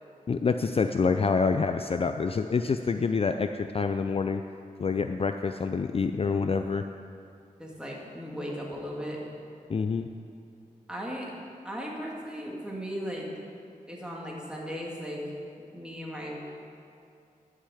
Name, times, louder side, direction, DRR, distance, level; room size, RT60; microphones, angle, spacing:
voice 1, 0.3-4.4 4.8-6.8 9.7-10.1, left 5 dB, 45° left, 7 dB, 0.4 m, -27 dB
voice 2, 7.6-9.2 10.9-11.3 11.6-13.3 13.9-15.2 15.7-16.4, equal, 5° right, -3 dB, 2.1 m, -36 dB
11.5 x 5.7 x 8.4 m, 2.5 s
wide cardioid pair, 95°, 14 cm